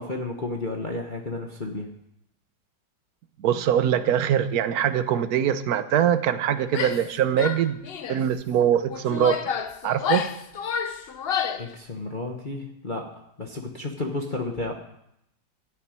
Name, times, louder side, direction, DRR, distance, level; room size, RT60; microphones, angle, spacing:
voice 1, 0.0-1.9 11.6-14.7, left 2 dB, 30° left, 1 dB, 1.2 m, -32 dB
voice 2, 3.4-7.8 8.1-9.4 9.8-10.2, right 9 dB, 60° right, 11 dB, 1.2 m, -23 dB
Female speech woman speaking / Yell, 6.7-7.1 7.4-8.2 8.9-11.7, left 7 dB, 75° left, 0.5 m, -29 dB
14.5 x 7.2 x 9.6 m, 0.78 s
omnidirectional pair, 2.1 m